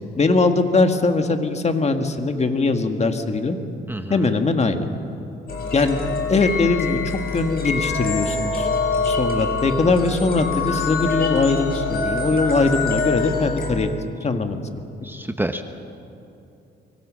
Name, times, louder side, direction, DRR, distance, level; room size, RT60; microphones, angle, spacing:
voice 1, 0.2-3.6 4.1-4.9 5.7-6.0 6.3-7.0 7.3-8.7 9.0-14.6, left 3 dB, 35° left, 6 dB, 1.9 m, -21 dB
voice 2, 3.9-4.3 15.0-15.8, right 1 dB, 10° right, 7 dB, 1.1 m, -28 dB
sound 1, 5.5-13.7, left 4 dB, 50° left, 5.8 m, -25 dB
25.5 x 22.5 x 6.4 m, 2.7 s
cardioid pair, 90°, 20 cm